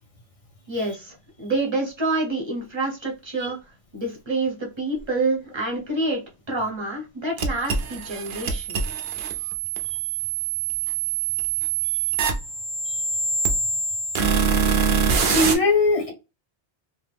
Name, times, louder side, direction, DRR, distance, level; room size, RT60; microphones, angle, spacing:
voice 1, 0.7-3.6 3.9-6.2 6.5-8.8, right 2 dB, 25° right, 0.9 m, -27 dB
sound 1, 7.4-15.5, right 5 dB, 55° right, 0.7 m, -24 dB
voice 2, 15.3-16.1, left 3 dB, 40° left, 0.6 m, -21 dB
2.9 x 2.1 x 3.3 m
omnidirectional pair, 1.2 m